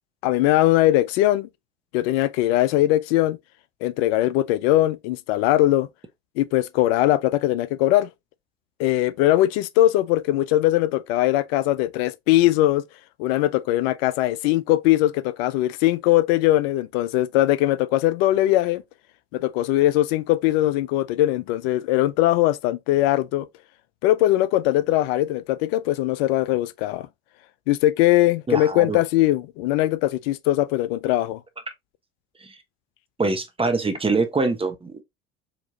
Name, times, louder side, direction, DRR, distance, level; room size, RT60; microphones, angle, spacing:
voice 1, 0.2-1.5 1.9-3.4 3.8-5.9 6.4-8.1 8.8-12.8 13.2-18.8 19.3-23.5 24.0-27.1 27.7-31.4, left 15 dB, 70° left, 0.5 m, -20 dB
voice 2, 28.5-29.0 32.4-32.6 33.2-35.0, right 3 dB, 15° right, 1.1 m, -24 dB
4.6 x 2.9 x 2.7 m
hypercardioid pair, 70°, 32 cm